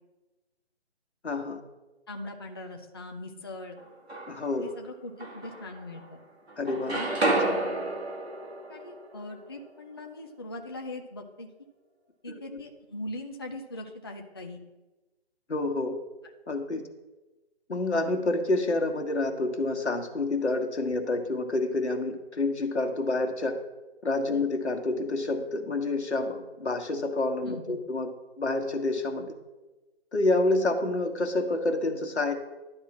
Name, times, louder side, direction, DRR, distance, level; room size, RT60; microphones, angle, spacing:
voice 1, 1.2-1.6 4.3-4.7 6.6-7.3 12.3-12.6 15.5-16.0 16.5-16.8 17.7-23.6 24.0-28.1 28.4-29.3 30.1-32.3, left 2 dB, 90° left, 4 dB, 1.4 m, -28 dB
voice 2, 2.1-3.8 4.6-6.2 6.9-7.1 8.7-11.5 12.2-14.6 24.3-24.5 27.5-27.8, left 1 dB, 25° left, 2 dB, 0.4 m, -40 dB
sound 1, 3.8-4.6 5.2-6.2 6.5-10.4, right 2 dB, 70° right, 2.1 m, -32 dB
11.0 x 3.7 x 7.2 m, 1.1 s
figure-of-eight pair, 155°, 33 cm